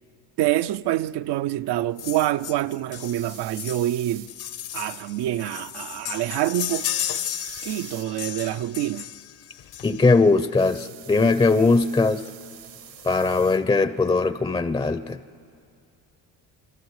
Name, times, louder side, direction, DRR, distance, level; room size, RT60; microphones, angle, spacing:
voice 1, 0.4-4.3 4.7-6.8 7.6-9.1, right 14 dB, 60° right, 0.6 m, -26 dB
sound 1, 2.0-10.3 11.4-11.5 11.8-11.9 12.1-12.3 12.6-13.2 13.7-13.8, left 11 dB, 55° left, 0.9 m, -34 dB
sound 2, 2.9-4.3 6.7-8.1 10.5-13.6, right 11 dB, 75° right, 1.9 m, -44 dB
voice 2, 9.8-12.2 13.0-15.2, left 3 dB, 10° left, 0.6 m, -20 dB
28.0 x 26.0 x 4.8 m
supercardioid pair, 70°, 46 cm